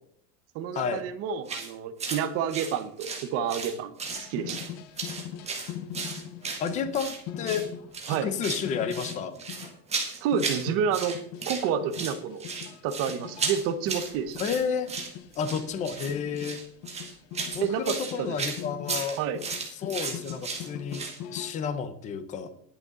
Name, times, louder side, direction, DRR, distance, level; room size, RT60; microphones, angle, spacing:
voice 1, 0.5-3.9 4.2-4.6 8.1-8.3 10.2-11.2 11.5-12.4 12.8-14.4 17.6-18.4 19.2-19.4, right 7 dB, 30° right, 11 dB, 0.9 m, -29 dB
sound 1, 1.5-1.7 2.0-2.2 2.5-3.7 4.0-4.7 5.0-7.2 7.4-7.7 7.9-8.7 8.9-10.7 10.9-11.6 11.9-21.2, right 4 dB, 15° right, 1.7 m, -34 dB
sound 2, 4.1-9.7 10.0-10.1 10.3-21.5, left 9 dB, 30° left, 0.9 m, -41 dB
voice 2, 6.6-7.6 8.1-9.4 14.4-14.9 15.4-16.6 17.5-19.2 19.8-21.0 21.3-22.5, left 6 dB, 15° left, 10 dB, 0.6 m, -31 dB
20.0 x 6.7 x 3.7 m, 0.66 s
supercardioid pair, 180°, 49 cm